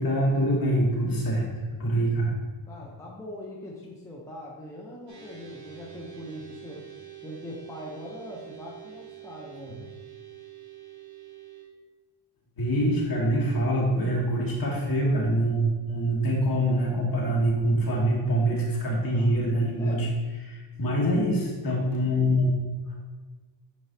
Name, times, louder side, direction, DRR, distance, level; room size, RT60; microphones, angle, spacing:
voice 1, 0.0-1.4 1.8-2.3 12.6-20.1 20.4-22.6, right 1 dB, 45° left, -3 dB, 2.1 m, -24 dB
voice 2, 2.7-6.8 7.2-9.9 19.0-19.3 19.8-20.2, left 1 dB, 5° left, -3 dB, 0.9 m, -42 dB
sound 1, 5.1-11.6, right 11 dB, 40° right, 2.0 m, -46 dB
9.3 x 4.6 x 2.9 m, 1.3 s
cardioid pair, 130°, 47 cm